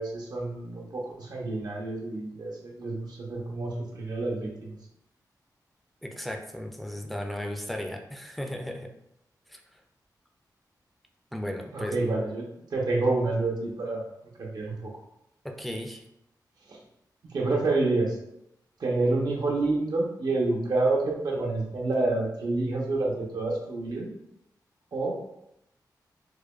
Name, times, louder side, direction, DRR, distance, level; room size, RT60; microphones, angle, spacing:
voice 1, 0.0-4.8 11.7-12.4 12.7-14.0 14.4-14.9 16.7-16.8 17.3-18.2 18.8-24.1 24.9-25.2, right 2 dB, 70° right, -1 dB, 0.8 m, -28 dB
voice 2, 6.0-8.9 9.5-9.6 11.3-11.9 15.4-16.0, equal, ahead, 3 dB, 0.4 m, -35 dB
4.7 x 2.2 x 2.3 m, 0.80 s
wide cardioid pair, 135°, 7 cm